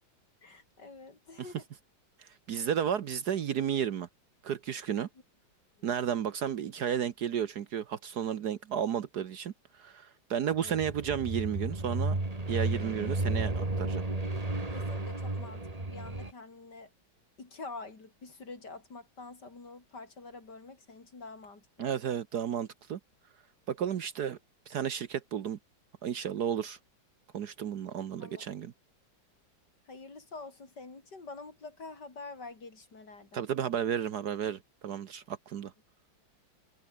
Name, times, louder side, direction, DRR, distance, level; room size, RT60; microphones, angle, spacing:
voice 1, 0.4-1.6 2.5-2.7 5.8-5.9 10.6-10.8 14.7-16.9 17.4-22.2 28.2-28.4 29.9-33.5, left 3 dB, 55° left, 4.7 m, -47 dB
voice 2, 2.2-4.1 4.4-5.1 5.8-9.5 9.8-12.2 12.5-14.0 21.8-23.0 23.7-24.4 24.7-25.6 26.0-26.8 27.3-28.7 33.3-35.7, right 8 dB, 60° right, 1.4 m, -33 dB
sound 1, 10.6-16.3, right 2 dB, 20° right, 2.5 m, -33 dB
omnidirectional pair, 2.1 m